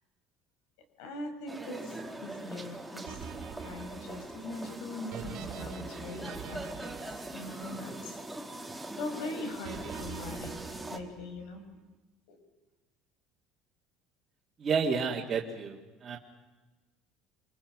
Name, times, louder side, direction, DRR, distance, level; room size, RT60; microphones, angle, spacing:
voice 1, 1.0-3.3 3.6-8.6 9.0-10.5 10.9-11.6 12.3-12.4, left 2 dB, 90° left, 6 dB, 5.7 m, -41 dB
sound 1, 1.5-11.0, right 2 dB, 5° right, 1.6 m, -42 dB
sound 2, 3.1-8.4 9.6-11.6, right 8 dB, 50° right, 2.6 m, -45 dB
voice 2, 14.6-16.2, right 5 dB, 20° right, -6 dB, 2.1 m, -30 dB
28.5 x 24.5 x 6.2 m, 1.2 s
cardioid pair, 180°, 0 cm